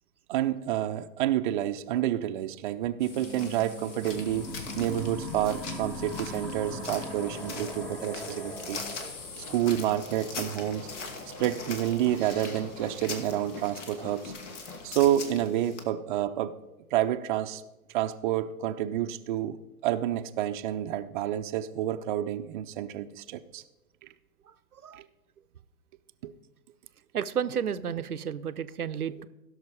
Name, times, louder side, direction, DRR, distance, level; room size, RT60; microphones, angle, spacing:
voice 1, 0.3-4.5 4.8-8.8 9.4-10.9 11.4-14.3 14.8-16.6 16.9-17.6 17.9-23.6 25.0-25.1 26.2-26.3, right 12 dB, 35° right, 8 dB, 0.5 m, -29 dB
sound 1, 3.0-15.8, left 4 dB, 55° left, 1.8 m, -42 dB
sound 2, 4.0-15.1, left 3 dB, 80° left, 1.7 m, -46 dB
sound 3, 4.0-9.1, equal, 5° left, 0.7 m, -39 dB
voice 2, 27.1-29.3, right 8 dB, 85° right, 11 dB, 0.7 m, -32 dB
16.0 x 6.4 x 4.8 m, 1.0 s
figure-of-eight pair, 115°, 43 cm